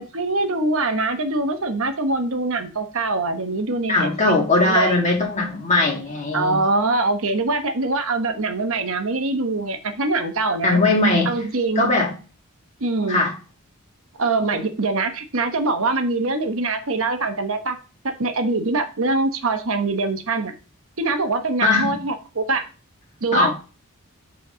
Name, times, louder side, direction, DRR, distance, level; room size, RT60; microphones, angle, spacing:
voice 1, 0.0-4.1 4.6-5.0 6.3-10.8 11.2-11.9 12.8-13.2 14.2-17.8 18.0-20.5 21.0-22.6 23.2-23.5, right 3 dB, 60° right, 7 dB, 1.1 m, -23 dB
voice 2, 3.9-6.6 10.6-11.3 11.8-12.1 13.1-13.3 21.6-21.9 23.3-23.5, left 2 dB, 30° left, -2 dB, 2.1 m, -19 dB
7.7 x 4.2 x 5.1 m, 0.33 s
head